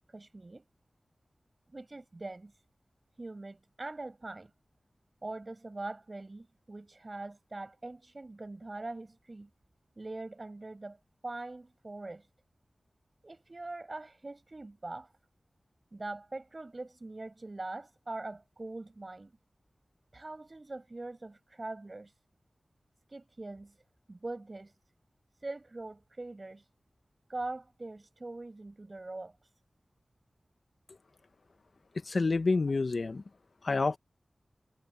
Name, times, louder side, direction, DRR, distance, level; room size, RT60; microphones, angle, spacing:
voice 1, 0.1-0.6 1.7-2.5 3.2-4.5 5.2-9.5 10.0-11.0 11.2-12.3 13.2-15.1 15.9-19.4 20.1-22.1 23.1-23.8 24.1-24.7 25.4-26.6 27.3-29.3, right 2 dB, 40° right, 6.8 m, -42 dB
voice 2, 32.1-33.2 33.6-34.0, left 3 dB, 65° left, 1.2 m, -28 dB
wide cardioid pair, 75°, 0 cm